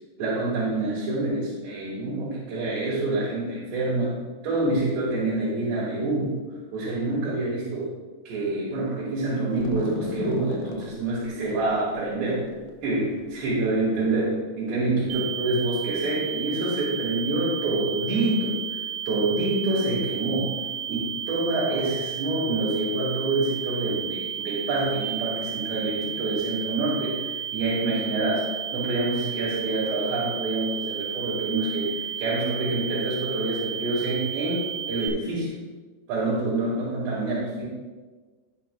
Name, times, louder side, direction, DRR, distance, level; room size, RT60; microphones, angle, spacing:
voice 1, 0.2-4.2 4.4-6.4 6.7-7.9 8.3-12.5 12.8-18.8 19.1-20.5 20.9-34.6 34.9-35.6 36.1-37.6, right 2 dB, 85° right, -7 dB, 4.0 m, -27 dB
sound 1, 9.5-14.2, left 4 dB, 80° left, 2.2 m, -38 dB
sound 2, 15.1-35.1, right 9 dB, 70° right, 2.5 m, -33 dB
17.0 x 5.8 x 2.2 m, 1.3 s
omnidirectional pair, 4.8 m